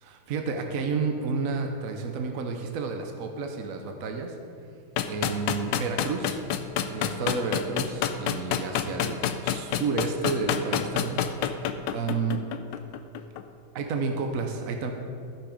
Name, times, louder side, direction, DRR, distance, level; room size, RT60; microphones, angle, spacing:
voice 1, 0.0-4.3 5.1-6.4 6.9-12.4 13.7-14.9, right 4 dB, 60° right, 4 dB, 0.9 m, -31 dB
sound 1, 5.0-13.4, left 9 dB, 75° left, 1.1 m, -28 dB
13.0 x 6.2 x 5.0 m, 2.4 s
omnidirectional pair, 2.3 m